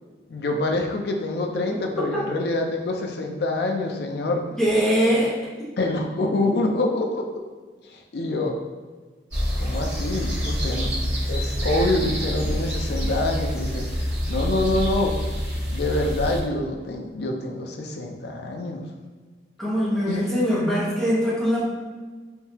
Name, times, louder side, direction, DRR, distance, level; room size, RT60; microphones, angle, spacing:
voice 1, 0.3-4.6 5.8-7.4 7.9-8.6 9.6-13.9 14.3-15.2 15.7-18.8 20.1-20.2, left 2 dB, 55° left, 2 dB, 0.4 m, -26 dB
voice 2, 4.6-5.7 19.6-21.7, equal, 5° left, -9 dB, 1.0 m, -22 dB
sound 1, 9.3-16.4, equal, 20° right, 1.4 m, -26 dB
3.6 x 2.7 x 2.8 m, 1.4 s
head